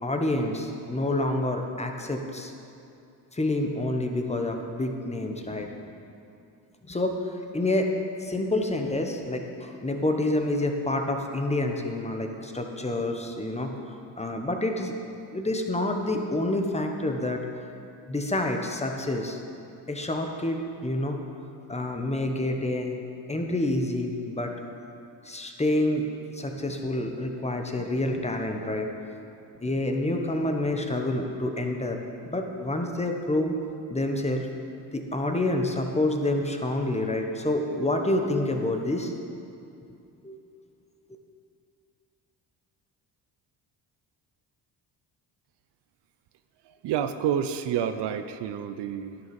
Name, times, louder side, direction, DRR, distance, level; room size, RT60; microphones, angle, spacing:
voice 1, 0.0-2.5 3.3-5.7 6.9-7.2 7.5-7.9 8.2-13.7 14.2-14.9 15.3-17.4 18.1-19.4 19.9-21.2 21.7-23.0 23.3-24.5 25.2-28.9 29.6-33.5 33.9-34.5 34.9-39.1 40.2-40.4, left 1 dB, 15° left, 3 dB, 1.0 m, -28 dB
voice 2, 46.6-49.2, right 9 dB, 70° right, 10 dB, 0.6 m, -29 dB
11.5 x 6.7 x 5.3 m, 2.6 s
cardioid pair, 80°, 43 cm